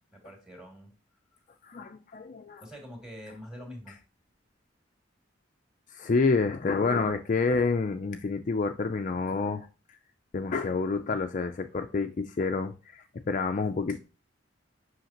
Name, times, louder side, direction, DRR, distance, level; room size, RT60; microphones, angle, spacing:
voice 1, 0.1-0.9 2.6-4.0, equal, 5° right, 2.5 m, -45 dB
voice 2, 1.6-2.6 5.9-9.7 10.3-14.0, left 4 dB, 40° left, 0.4 m, -28 dB
7.8 x 5.7 x 2.9 m
head